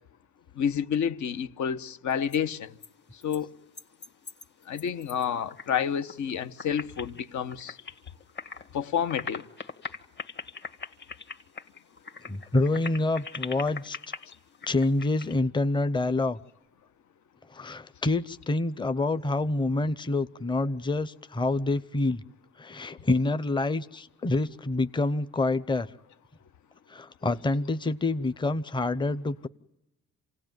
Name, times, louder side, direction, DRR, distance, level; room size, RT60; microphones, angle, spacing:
voice 1, 0.6-2.7 3.2-3.5 4.7-7.8 8.7-9.4, left 8 dB, 70° left, 1.2 m, -29 dB
sound 1, 2.1-2.4 2.8-2.9 3.2-3.4 3.7-5.7 5.9-6.3 6.6-8.7 8.9-15.4, left 4 dB, 35° left, 1.9 m, -41 dB
voice 2, 12.3-14.0 14.7-16.4 17.5-22.2 22.6-25.9 26.9-29.5, left 2 dB, 15° left, 0.8 m, -27 dB
27.0 x 18.0 x 9.3 m
cardioid pair, 90°, 30 cm